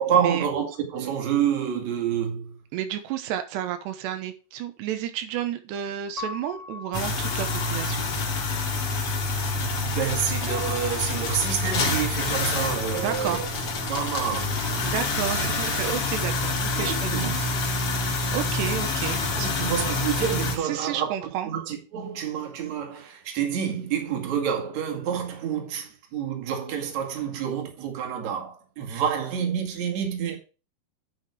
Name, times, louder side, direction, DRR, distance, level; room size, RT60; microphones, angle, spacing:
voice 1, 0.0-2.6 9.5-13.5 13.9-14.6 16.7-17.5 19.2-30.4, right 8 dB, 50° right, 3.0 m, -28 dB
voice 2, 2.7-8.1 12.9-13.4 14.8-17.3 18.3-19.2 20.6-21.5, right 10 dB, 90° right, 3.2 m, -31 dB
Piano, 6.2-12.3, left 3 dB, 20° right, 1.0 m, -43 dB
sound 1, 6.9-20.6, left 3 dB, 45° left, 2.3 m, -27 dB
9.5 x 6.5 x 4.9 m
omnidirectional pair, 4.8 m